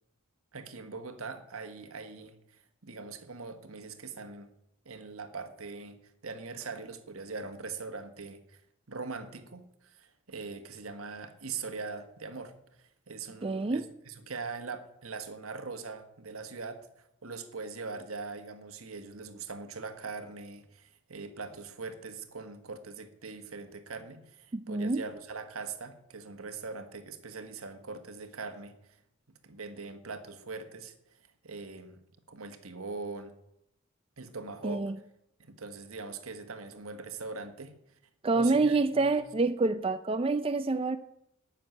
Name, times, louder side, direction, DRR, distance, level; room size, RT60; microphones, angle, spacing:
voice 1, 0.5-4.5 4.8-6.0 6.2-8.6 8.9-12.5 12.8-28.7 29.4-31.2 31.4-32.0 32.3-33.4 34.2-34.9 35.4-37.8 38.3-39.2, right 4 dB, 80° right, 1.5 m, -42 dB
voice 2, 13.4-13.8 24.5-25.0 34.6-35.0 38.2-41.0, right 3 dB, 25° right, 0.4 m, -27 dB
12.0 x 6.6 x 9.3 m
head